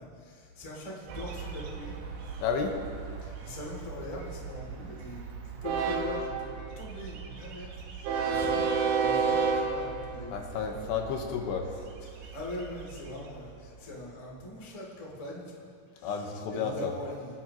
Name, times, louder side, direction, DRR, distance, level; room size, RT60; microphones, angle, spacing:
voice 1, 0.0-2.0 3.2-7.7 8.0-10.9 12.2-15.5 15.9-17.4, left 1 dB, 15° left, -4 dB, 1.3 m, -42 dB
Train, 1.1-14.1, right 5 dB, 90° right, 3.4 m, -33 dB
voice 2, 2.4-2.8 10.3-11.7 16.0-16.9, left 6 dB, 80° left, 2 dB, 3.2 m, -31 dB
26.5 x 10.0 x 3.0 m, 2.2 s
omnidirectional pair, 4.9 m